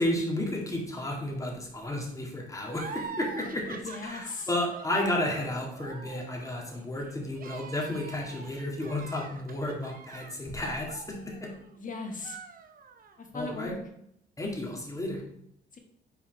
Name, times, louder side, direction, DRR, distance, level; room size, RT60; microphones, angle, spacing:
voice 1, 0.0-11.5 13.3-13.7 14.4-15.2, left 1 dB, 15° left, -1 dB, 2.1 m, -32 dB
sound 1, 2.7-11.8 12.1-13.2, right 5 dB, 45° right, 0.8 m, -44 dB
voice 2, 3.7-4.5 11.7-12.4 13.2-13.8 15.7-15.8, left 3 dB, 40° left, 4 dB, 1.4 m, -38 dB
5.7 x 4.4 x 4.4 m, 0.73 s
cardioid pair, 90°, 20 cm